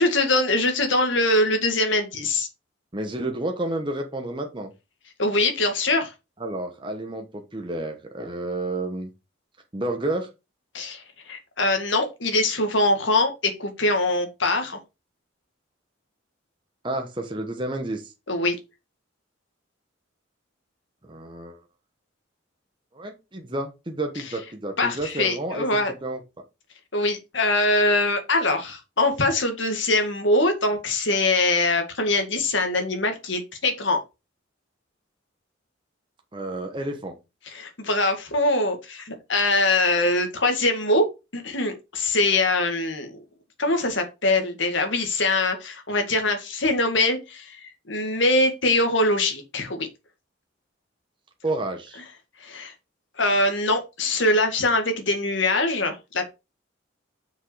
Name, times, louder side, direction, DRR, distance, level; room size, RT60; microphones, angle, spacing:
voice 1, 0.0-2.5 5.2-6.1 10.7-14.8 18.3-18.6 24.8-25.9 26.9-34.0 37.5-41.1 41.3-43.2 43.6-49.9 52.4-52.7 53.2-56.3, left 2 dB, 65° left, 5 dB, 2.0 m, -23 dB
voice 2, 2.9-4.7 6.4-9.1 9.7-10.3 16.8-18.1 21.0-21.6 22.9-25.7 26.0-26.2 36.3-37.2 51.4-52.0, right 2 dB, 25° right, 3 dB, 1.1 m, -30 dB
6.3 x 5.2 x 4.9 m, 0.26 s
head